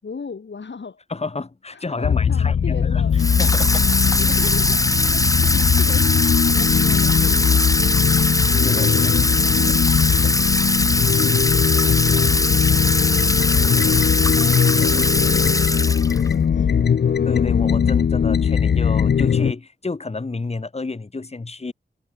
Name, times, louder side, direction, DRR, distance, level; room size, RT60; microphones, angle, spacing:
voice 1, 0.0-1.0 1.7-3.1 4.1-8.2 8.9-9.6 11.3-14.7 15.0-16.8, left 5 dB, 85° left, 5.4 m, -39 dB
voice 2, 1.1-3.0 3.4-3.8 8.6-9.1 10.0-10.3 17.2-21.7, left 3 dB, 35° left, 1.1 m, -30 dB
sound 1, 2.0-19.5, left 7 dB, 65° left, 0.5 m, -19 dB
Water tap faucet / Sink (filling or washing), 3.2-16.3, left 2 dB, 20° left, 1.3 m, -21 dB
wide cardioid pair, 70°, 18 cm